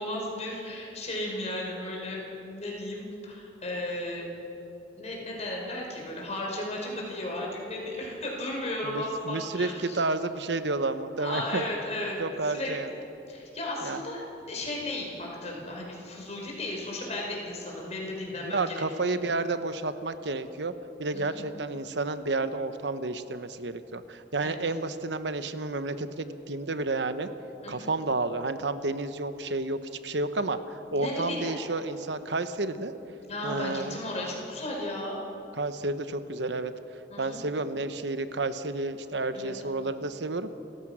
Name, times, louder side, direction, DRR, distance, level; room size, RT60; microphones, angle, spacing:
voice 1, 0.0-4.3 4.9-10.0 11.2-13.0 13.3-18.7 21.1-21.4 24.4-24.6 27.6-27.9 30.9-31.5 33.3-35.2 37.1-37.4 39.3-39.5, left 1 dB, 40° left, -2 dB, 5.3 m, -35 dB
voice 2, 8.8-11.6 12.2-12.9 13.8-14.0 18.4-20.7 21.0-27.3 27.7-29.8 30.0-32.9 33.4-34.0 35.6-36.7 37.2-40.5, right 2 dB, 80° right, 10 dB, 1.0 m, -31 dB
29.5 x 15.0 x 6.2 m, 2.9 s
head